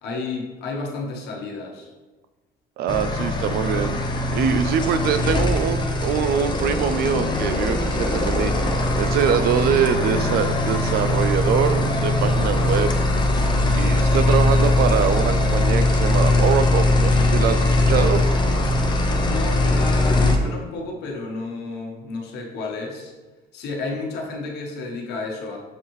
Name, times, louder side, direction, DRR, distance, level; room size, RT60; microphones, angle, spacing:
voice 1, 0.0-1.9 19.2-23.1 23.5-25.6, left 3 dB, 75° left, 0 dB, 1.0 m, -31 dB
voice 2, 2.8-4.0 4.3-13.0 13.7-18.2, right 7 dB, 65° right, 11 dB, 0.4 m, -23 dB
sound 1, 2.9-20.4, left 2 dB, 25° left, 0.6 m, -20 dB
6.7 x 2.6 x 3.0 m, 1.2 s
cardioid pair, 110°, 17 cm